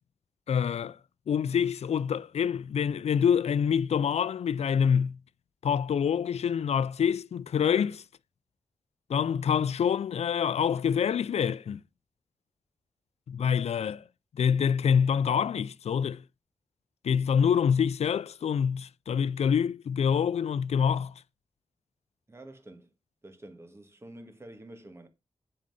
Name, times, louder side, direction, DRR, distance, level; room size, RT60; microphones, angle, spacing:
voice 1, 0.5-1.0 1.3-5.2 5.6-8.0 9.1-11.8 13.3-14.0 14.3-16.2 17.0-21.1, left 7 dB, 80° left, 0.4 m, -26 dB
voice 2, 22.3-22.9 23.2-25.1, right 1 dB, 25° right, 1.4 m, -48 dB
11.0 x 3.9 x 5.4 m
wide cardioid pair, 130°, 11 cm